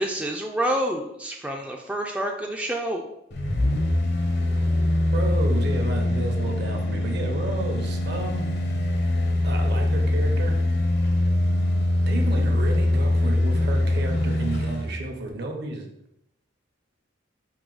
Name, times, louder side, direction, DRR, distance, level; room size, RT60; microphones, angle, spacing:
voice 1, 0.0-3.0, right 1 dB, 5° right, 1 dB, 0.3 m, -28 dB
sound 1, 3.3-14.9 15.3-15.4, left 1 dB, 60° left, 0.7 m, -23 dB
voice 2, 5.1-8.5 9.4-10.6 12.1-15.9, right 2 dB, 60° right, 3 dB, 0.8 m, -31 dB
4.8 x 2.7 x 3.8 m, 0.81 s
head